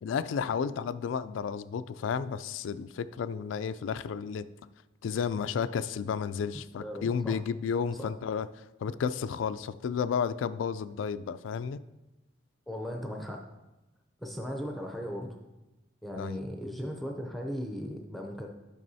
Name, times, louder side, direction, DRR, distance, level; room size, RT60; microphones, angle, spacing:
voice 1, 0.0-4.5 5.0-11.8 16.2-16.4, left 6 dB, 80° left, 15 dB, 0.3 m, -32 dB
voice 2, 6.8-7.4 8.0-8.1 12.7-13.4 14.2-15.4 16.0-18.5, equal, ahead, 1 dB, 0.5 m, -37 dB
10.5 x 6.0 x 2.7 m, 1.0 s
head